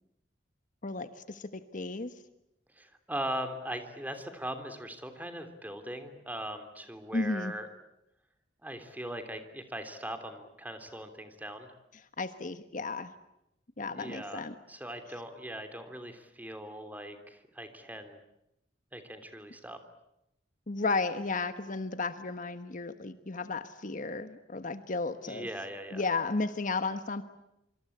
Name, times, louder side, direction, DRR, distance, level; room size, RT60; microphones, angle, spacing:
voice 1, 0.8-2.1 7.1-7.5 12.2-13.1 13.8-14.5 20.7-25.5 25.9-27.2, left 3 dB, 45° left, 10 dB, 1.2 m, -33 dB
voice 2, 2.7-7.7 8.6-11.7 14.0-18.2 18.9-19.8 25.2-26.0, right 1 dB, 10° right, 8 dB, 3.2 m, -40 dB
26.5 x 26.0 x 8.6 m, 0.84 s
head